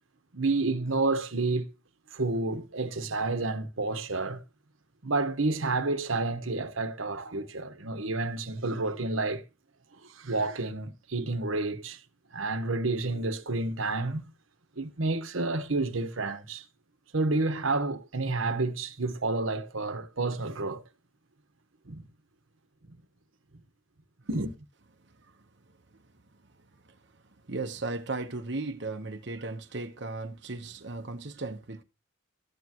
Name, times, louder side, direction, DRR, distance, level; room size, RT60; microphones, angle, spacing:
voice 1, 0.3-1.7 2.1-4.4 5.0-9.4 10.1-12.0 12.3-14.3 14.8-16.6 17.1-20.8 21.9-22.1 24.3-24.5, right 3 dB, 80° right, 1.3 m, -30 dB
voice 2, 27.5-31.8, right 3 dB, 60° right, 1.0 m, -36 dB
13.0 x 9.7 x 3.0 m
head